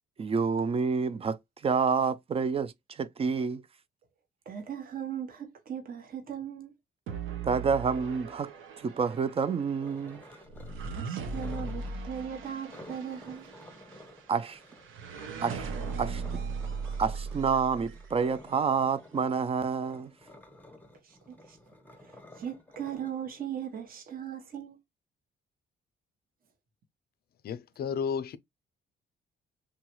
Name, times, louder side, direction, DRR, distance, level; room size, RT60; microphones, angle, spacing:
voice 1, 0.2-1.4 1.6-3.6 7.4-8.5 8.8-10.2 14.3-14.6 15.4-15.7 16.0-16.4 17.0-20.1, right 5 dB, 30° right, 0.3 m, -28 dB
voice 2, 4.5-6.7 10.9-13.5 21.0-21.6 21.9-24.8, right 9 dB, 45° right, 0.8 m, -38 dB
sound 1, 7.1-18.4, right 5 dB, 85° right, 0.6 m, -39 dB
sound 2, 9.8-11.0 11.3-11.9 12.7-15.3 15.7-23.8, left 1 dB, 10° left, 0.7 m, -52 dB
voice 3, 27.4-28.4, left 6 dB, 50° left, 0.4 m, -32 dB
3.1 x 2.3 x 2.9 m
cardioid pair, 90°, 20 cm